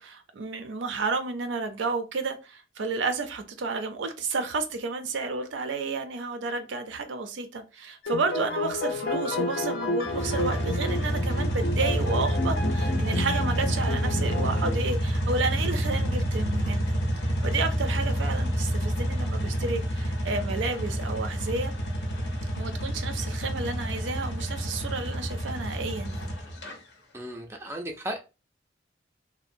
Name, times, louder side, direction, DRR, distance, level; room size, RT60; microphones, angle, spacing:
voice 1, 0.0-16.9 17.4-21.7 22.5-26.3, right 3 dB, 90° right, 0.5 m, -31 dB
sound 1, 8.0-14.8, left 2 dB, 55° left, 0.4 m, -31 dB
sound 2, 10.1-26.7, equal, 85° left, 0.7 m, -28 dB
voice 2, 27.1-28.2, right 1 dB, 15° right, 0.4 m, -35 dB
2.8 x 2.0 x 2.5 m
head